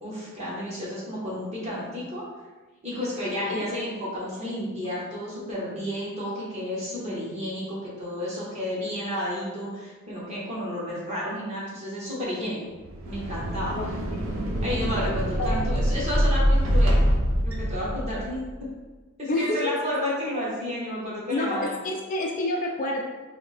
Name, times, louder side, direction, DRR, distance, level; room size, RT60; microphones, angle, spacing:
voice 1, 0.0-2.2 2.8-12.6 13.0-14.0 14.6-17.0 17.4-18.4 19.2-21.7, left 1 dB, 30° right, -7 dB, 1.2 m, -31 dB
sound 1, 12.8-18.4, equal, 60° right, 0.6 m, -24 dB
voice 2, 19.3-19.7 21.3-23.0, left 2 dB, 35° left, 0 dB, 0.3 m, -28 dB
3.4 x 2.7 x 3.3 m, 1.3 s
head